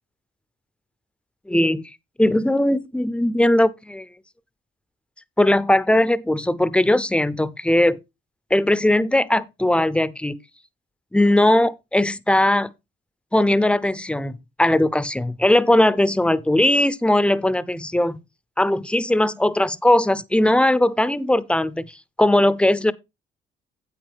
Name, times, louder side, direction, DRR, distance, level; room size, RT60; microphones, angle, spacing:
voice 1, 1.5-1.8 2.2-4.0 5.4-8.0 8.5-10.4 11.1-12.7 13.3-18.2 18.6-21.9 22.2-22.9, left 1 dB, 5° left, 0.7 m, -19 dB
8.8 x 8.6 x 3.5 m
cardioid pair, 90°, 20 cm